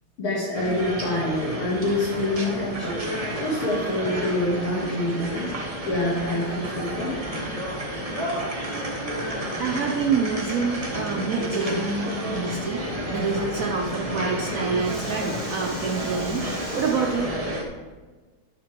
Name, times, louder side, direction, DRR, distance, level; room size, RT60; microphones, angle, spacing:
voice 1, 0.2-5.5 5.8-7.2 15.4-15.5, left 1 dB, 85° left, -8 dB, 2.8 m, -26 dB
sound 1, 0.5-17.6, equal, 30° right, 0.7 m, -31 dB
voice 2, 9.6-17.4, right 5 dB, 80° right, 1 dB, 0.7 m, -27 dB
9.6 x 8.1 x 3.4 m, 1.3 s
omnidirectional pair, 2.3 m